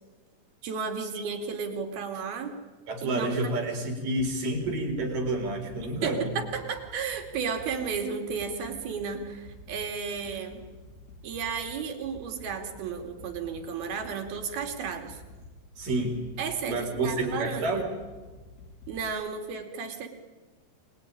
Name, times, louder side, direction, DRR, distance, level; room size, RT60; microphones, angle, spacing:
voice 1, 0.6-2.6 3.0-3.5 6.0-10.6 11.2-15.2 16.4-17.9 18.9-20.1, right 6 dB, 80° right, 5 dB, 4.6 m, -33 dB
voice 2, 2.9-6.3 15.8-16.2 16.7-17.8, right 2 dB, 60° right, 3 dB, 6.0 m, -29 dB
sound 1, 4.2-19.1, left 2 dB, 85° left, 5.1 m, -49 dB
27.0 x 21.0 x 9.9 m, 1.3 s
omnidirectional pair, 4.3 m